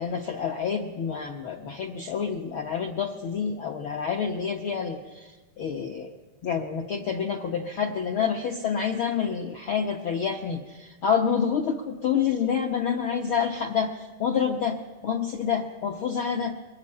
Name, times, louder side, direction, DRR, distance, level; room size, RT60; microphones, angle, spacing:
voice 1, 0.0-5.3 5.6-6.1 6.4-13.9 14.2-14.8 15.0-16.5, left 7 dB, 70° left, 2 dB, 1.2 m, -28 dB
22.5 x 16.5 x 9.8 m, 1.2 s
omnidirectional pair, 4.1 m